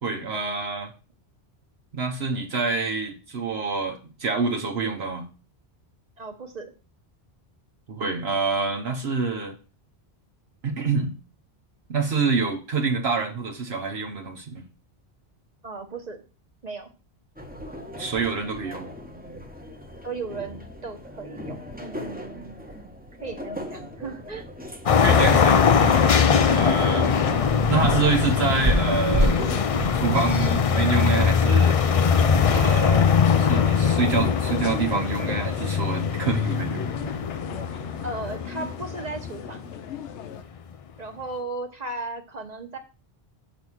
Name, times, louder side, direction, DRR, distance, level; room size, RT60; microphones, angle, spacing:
voice 1, 0.0-0.9 1.9-5.3 7.9-9.6 10.6-11.1 11.9-14.6 18.0-18.9 25.0-26.2 26.5-27.2 27.7-29.4 30.0-31.8 32.4-33.1 33.4-36.9, right 4 dB, 70° right, 2 dB, 1.2 m, -26 dB
voice 2, 6.2-6.7 15.6-16.2 16.6-16.9 20.0-22.6 23.2-24.4 38.0-39.6 41.0-42.8, right 3 dB, 40° right, 4 dB, 1.3 m, -36 dB
sound 1, 17.4-35.0, equal, 10° right, 1.0 m, -33 dB
sound 2, 24.9-39.6, left 6 dB, 45° left, 0.5 m, -21 dB
sound 3, 25.1-40.4, left 7 dB, 85° left, 1.0 m, -40 dB
7.0 x 4.1 x 6.2 m, 0.33 s
omnidirectional pair, 1.1 m